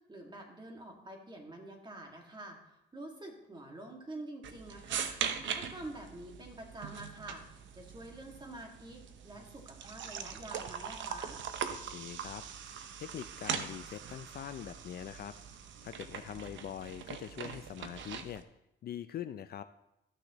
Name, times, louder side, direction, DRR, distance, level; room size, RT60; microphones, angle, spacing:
voice 1, 0.1-2.6 2.9-11.4, right 1 dB, 20° right, 1 dB, 2.0 m, -47 dB
sound 1, 4.4-18.4, right 7 dB, 70° right, 0.8 m, -41 dB
voice 2, 11.7-12.4 13.0-15.3 15.8-18.4 18.8-19.6, left 10 dB, 50° left, 11 dB, 0.4 m, -43 dB
13.5 x 6.3 x 3.0 m, 0.87 s
cardioid pair, 90°, 20 cm